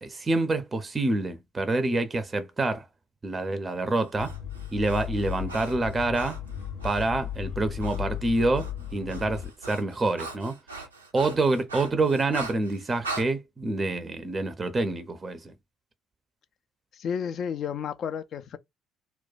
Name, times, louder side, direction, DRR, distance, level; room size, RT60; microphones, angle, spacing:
voice 1, 0.0-2.9 3.2-4.3 4.7-6.4 6.8-10.6 11.1-15.5, right 2 dB, 25° right, 0.5 m, -27 dB
Breathing, 3.9-7.1 7.8-8.0 8.3-13.3, right 3 dB, 85° right, 0.4 m, -40 dB
sound 1, 4.1-9.5, left 10 dB, 65° left, 0.7 m, -35 dB
voice 2, 16.9-18.6, left 7 dB, 50° left, 0.3 m, -32 dB
2.2 x 2.2 x 3.8 m
figure-of-eight pair, 50°, 0 cm